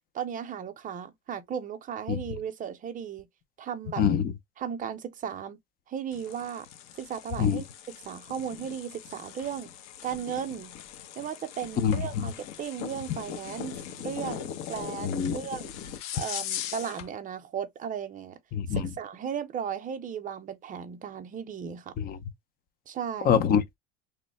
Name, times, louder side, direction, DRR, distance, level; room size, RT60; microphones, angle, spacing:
voice 1, 0.1-3.3 3.6-4.0 4.6-5.6 5.9-6.7 7.0-7.7 8.0-9.7 10.0-10.7 11.2-15.7 16.1-18.4 18.7-21.9 22.9-23.4, right 8 dB, 25° right, 0.6 m, -35 dB
voice 2, 4.0-4.3 7.4-7.6 11.8-12.3 15.0-15.4 18.5-18.9 22.0-22.2 23.2-23.8, left 8 dB, 30° left, 0.5 m, -25 dB
sound 1, 6.1-17.1, left 10 dB, 70° left, 0.9 m, -40 dB
3.1 x 2.0 x 4.1 m
cardioid pair, 135°, 30 cm